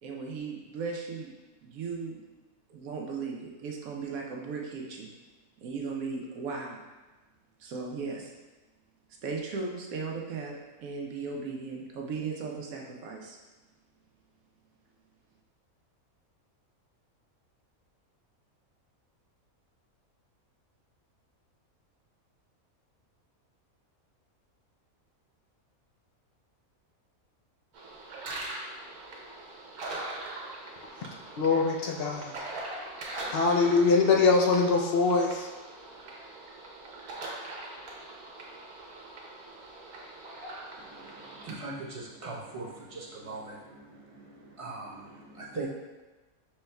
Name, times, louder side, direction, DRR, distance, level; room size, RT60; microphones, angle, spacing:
voice 1, 0.0-1.3 1.6-2.2 2.7-5.1 5.6-6.8 7.6-8.3 9.2-10.5 10.8-13.4, right 4 dB, 75° right, -1 dB, 1.1 m, -36 dB
sound 1, 27.7-41.5, right 2 dB, 90° right, 1.3 m, -42 dB
voice 2, 31.4-32.3 33.3-35.5, left 4 dB, 65° left, 0 dB, 0.6 m, -23 dB
voice 3, 40.8-45.7, right 3 dB, 35° right, -4 dB, 0.5 m, -41 dB
5.4 x 4.4 x 2.2 m, 1.2 s
omnidirectional pair, 1.5 m